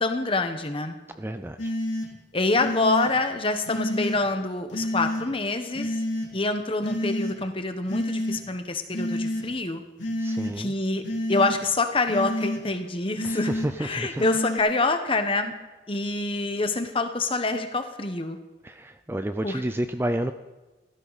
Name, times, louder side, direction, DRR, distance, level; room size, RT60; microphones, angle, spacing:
voice 1, 0.0-1.0 2.3-6.0 6.3-9.8 10.6-11.0 11.3-13.5 13.8-15.5 15.9-18.4 19.4-19.6, left 2 dB, 30° left, 7 dB, 1.1 m, -26 dB
voice 2, 1.2-1.7 10.2-10.7 13.2-14.2 18.6-20.3, right 1 dB, 10° right, 9 dB, 0.4 m, -30 dB
sound 1, 1.6-2.1 2.6-3.1 3.7-4.2 4.7-5.2 5.7-6.3 6.8-7.4 7.9-8.4 8.9-9.4 10.0-10.5 11.0-11.6 12.1-12.6 13.2-13.7 14.2-14.6, left 1 dB, 85° left, 2.9 m, -29 dB
16.5 x 13.5 x 4.1 m, 1.2 s
head